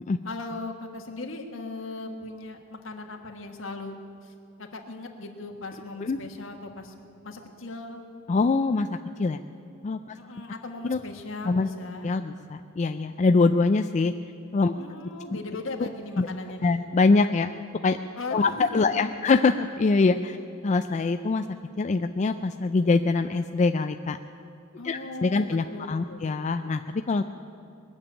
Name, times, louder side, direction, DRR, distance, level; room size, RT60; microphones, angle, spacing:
voice 1, 0.2-4.0 4.2-4.3 4.6-6.9 7.2-8.0 10.2-12.1 14.8-16.9 18.2-19.3 24.8-26.3, left 2 dB, 70° left, 3 dB, 1.6 m, -38 dB
voice 2, 8.3-9.4 9.8-10.2 10.8-11.0 11.5-11.7 12.0-14.1 14.5-14.7 16.2-16.3 16.6-17.5 17.8-18.0 18.3-20.4 20.6-21.4 21.8-24.2 24.8-27.2, left 3 dB, 35° left, 8 dB, 0.4 m, -24 dB
21.0 x 7.1 x 9.6 m, 2.6 s
head